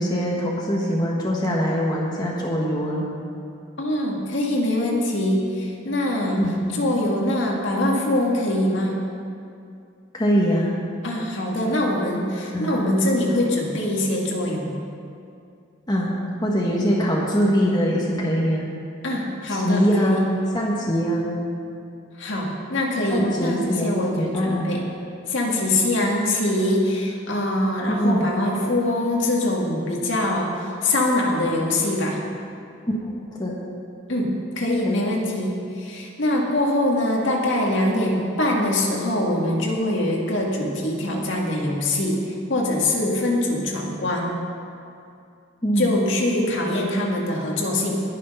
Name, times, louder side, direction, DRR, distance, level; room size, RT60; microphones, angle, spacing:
voice 1, 0.0-3.1 6.4-6.6 10.1-10.7 12.5-12.8 15.9-18.7 19.5-20.3 20.5-21.3 23.1-24.7 27.9-28.3 32.9-33.1 33.4-33.5 34.8-35.0 45.6-45.9, equal, 20° left, -3 dB, 1.4 m, -23 dB
voice 2, 3.8-6.4 6.7-9.0 11.0-14.8 19.0-20.2 22.2-24.8 25.3-32.2 34.1-44.3 45.8-48.0, left 1 dB, 65° left, -1 dB, 2.0 m, -23 dB
20.0 x 6.6 x 5.5 m, 2.5 s
head